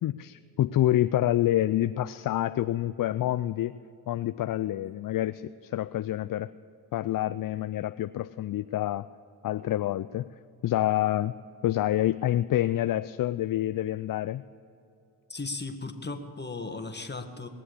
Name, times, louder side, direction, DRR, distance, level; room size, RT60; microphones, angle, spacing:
voice 1, 0.0-3.7 4.1-6.5 6.9-9.1 9.4-10.3 10.6-11.3 11.6-14.4, left 13 dB, 45° left, 13 dB, 0.4 m, -27 dB
voice 2, 15.3-17.5, left 3 dB, 20° left, 7 dB, 1.7 m, -36 dB
20.0 x 7.4 x 8.5 m, 2.6 s
supercardioid pair, 45°, 47 cm